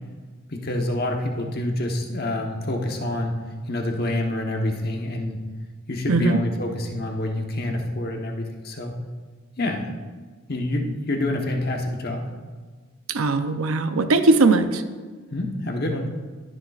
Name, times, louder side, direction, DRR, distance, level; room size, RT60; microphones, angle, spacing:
voice 1, 0.5-3.3 3.7-5.4 5.9-8.9 9.6-9.9 10.5-12.3 15.3-16.1, left 1 dB, 45° left, 2 dB, 1.1 m, -27 dB
voice 2, 6.1-6.4 13.1-14.8, right 3 dB, 75° right, 9 dB, 0.6 m, -19 dB
20.0 x 6.7 x 2.5 m, 1.5 s
head